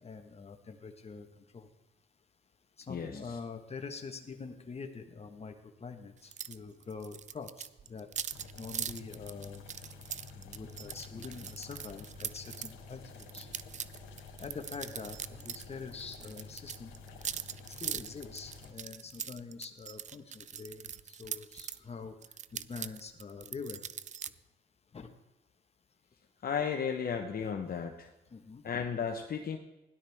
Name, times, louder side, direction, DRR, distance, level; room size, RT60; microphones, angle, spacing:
voice 1, 0.0-1.3 1.5-1.7 2.9-5.5 5.8-8.1 8.6-9.6 10.4-13.0 13.3-13.5 14.4-16.9 17.8-22.1 22.5-23.8 24.9-25.1 28.3-28.6, left 5 dB, 30° left, 6 dB, 1.4 m, -44 dB
sound 1, 6.3-6.6 6.8-12.7 13.2-15.7 15.9-21.8 22.2-24.3, right 8 dB, 40° right, 0.4 m, -41 dB
sound 2, 8.3-18.7, left 3 dB, 80° left, 2.6 m, -50 dB
voice 2, 26.4-28.1 28.6-29.6, left 7 dB, 50° left, 3 dB, 1.1 m, -34 dB
17.0 x 11.5 x 3.6 m, 0.98 s
cardioid pair, 90°, 20 cm